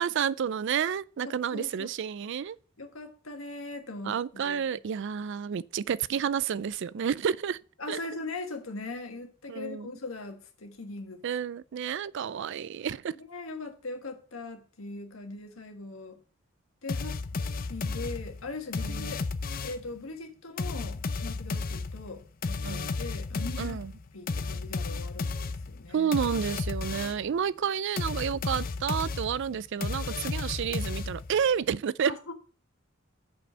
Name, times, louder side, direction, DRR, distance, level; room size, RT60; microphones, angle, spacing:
voice 1, 0.0-2.6 4.0-7.6 7.9-8.0 9.5-9.9 11.2-13.2 18.8-19.1 22.6-22.9 23.6-23.9 25.9-32.1, right 7 dB, 60° right, 0.4 m, -30 dB
voice 2, 1.2-1.9 2.8-4.7 7.8-11.2 13.2-16.2 16.8-17.2 17.7-19.2 19.6-23.8 24.1-26.1 32.0-32.3, left 3 dB, 90° left, 1.7 m, -40 dB
sound 1, 16.9-19.9 20.6-27.3 28.0-31.5, left 4 dB, 45° left, 0.6 m, -33 dB
6.9 x 5.5 x 6.2 m
head